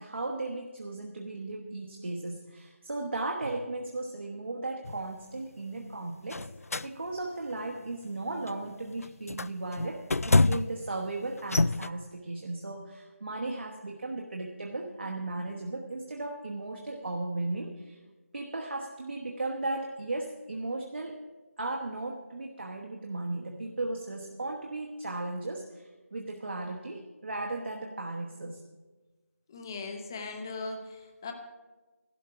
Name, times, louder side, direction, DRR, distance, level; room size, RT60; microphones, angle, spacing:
voice 1, 0.0-6.5 6.8-18.0 18.3-21.2 21.6-28.6, right 2 dB, 50° right, 1 dB, 1.2 m, -36 dB
sound 1, 4.8-5.0 6.3-6.9 7.5-7.8 8.5-8.6 9.0-10.9 11.4-11.9, left 3 dB, 75° left, 0.4 m, -26 dB
voice 2, 29.5-31.3, left 3 dB, 15° left, 5 dB, 0.7 m, -39 dB
12.0 x 12.0 x 4.9 m, 1.2 s
figure-of-eight pair, 165°, 8 cm